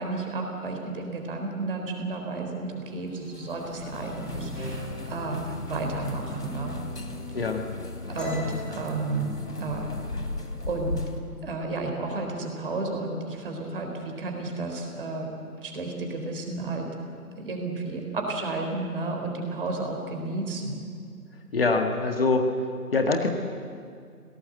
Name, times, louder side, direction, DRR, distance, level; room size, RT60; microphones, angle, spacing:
voice 1, 0.0-6.7 8.1-10.1 10.7-10.9 11.4-15.3 15.6-16.9 17.4-20.7, right 2 dB, 35° right, 2 dB, 4.0 m, -32 dB
sound 1, 3.0-11.2, left 2 dB, 75° left, 3.1 m, -36 dB
voice 2, 7.3-7.7 21.5-22.5 22.9-23.3, left 3 dB, 35° left, 4 dB, 1.7 m, -24 dB
sound 2, 8.2-11.6 11.9-12.3 12.6-13.2 13.4-14.2, left 1 dB, ahead, 1.8 m, -43 dB
26.0 x 18.0 x 8.0 m, 2.2 s
figure-of-eight pair, 150°, 47 cm